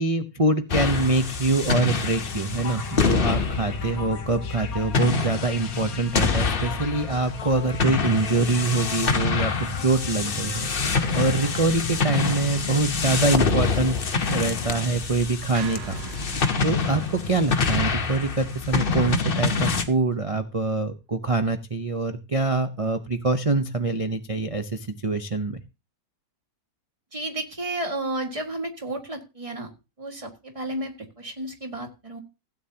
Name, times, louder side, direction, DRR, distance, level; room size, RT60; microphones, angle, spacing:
voice 1, 0.0-16.0 16.6-25.6, right 3 dB, 40° right, 7 dB, 0.5 m, -25 dB
sound 1, 0.7-19.8, left 5 dB, 40° left, 1.0 m, -26 dB
sound 2, 2.2-11.7, left 6 dB, 60° left, 1.5 m, -40 dB
sound 3, 15.5-19.8, right 7 dB, 70° right, 1.4 m, -42 dB
voice 2, 27.1-29.7 30.0-32.2, right 1 dB, 20° right, 4 dB, 1.9 m, -32 dB
16.0 x 9.1 x 2.8 m, 0.28 s
omnidirectional pair, 1.8 m